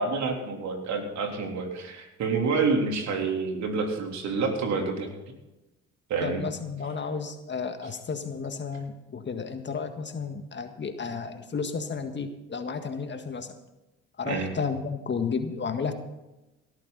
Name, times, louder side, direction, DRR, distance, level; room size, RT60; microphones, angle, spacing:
voice 1, 0.0-5.1 6.1-6.4 14.3-14.5, right 4 dB, 60° right, 2 dB, 3.6 m, -28 dB
voice 2, 6.2-13.5 14.2-15.9, left 5 dB, 35° left, 7 dB, 1.8 m, -32 dB
17.5 x 13.5 x 4.2 m, 1.0 s
hypercardioid pair, 65°, 32 cm